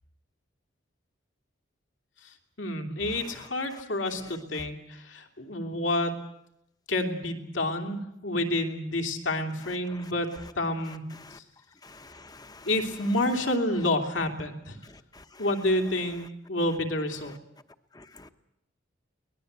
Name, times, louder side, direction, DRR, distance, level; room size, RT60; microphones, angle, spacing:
voice 1, 2.2-6.1 6.9-10.3 10.5-11.0 11.3-11.4 12.6-14.8 15.4-17.3, left 1 dB, 70° left, 4 dB, 3.0 m, -29 dB
voice 2, 11.8-12.7 15.1-15.2 18.0-18.3, left 3 dB, 20° left, 9 dB, 1.0 m, -49 dB
23.0 x 19.5 x 8.2 m, 0.82 s
head